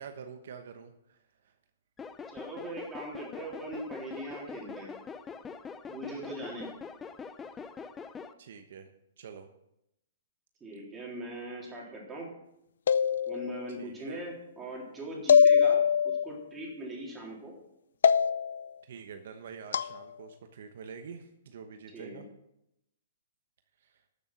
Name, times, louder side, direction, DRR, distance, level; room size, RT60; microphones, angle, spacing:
voice 1, 0.0-1.5 8.4-8.9 9.2-9.5 13.8-14.2 18.8-22.3 23.8-24.0, right 6 dB, 65° right, 7 dB, 1.0 m, -46 dB
sound 1, 2.0-8.3, left 5 dB, 15° left, 0.6 m, -44 dB
voice 2, 2.3-4.9 5.9-6.7 10.6-12.3 13.3-17.5 21.9-22.3, right 1 dB, 15° right, -3 dB, 3.6 m, -40 dB
sound 2, 12.9-13.7 15.3-16.2 18.0-18.7 19.7-20.0, left 7 dB, 75° left, 0.5 m, -22 dB
12.5 x 7.2 x 6.0 m, 0.84 s
hypercardioid pair, 150°, 0 cm